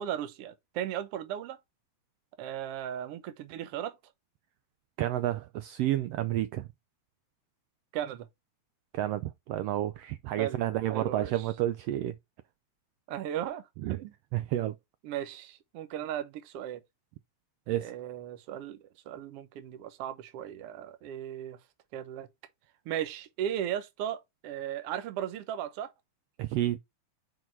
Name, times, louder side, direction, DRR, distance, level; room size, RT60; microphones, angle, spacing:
voice 1, 0.0-1.6 2.4-4.0 7.9-8.3 10.4-10.6 10.9-11.4 13.1-13.6 14.0-14.1 15.0-16.8 17.8-21.6 21.9-22.3 22.8-25.9, right 10 dB, 65° right, 1.6 m, -36 dB
voice 2, 5.0-6.7 8.9-12.1 13.8-14.0 14.3-14.7 17.7-17.9 26.4-26.8, right 13 dB, 90° right, 1.4 m, -30 dB
5.9 x 4.7 x 4.5 m
omnidirectional pair, 3.4 m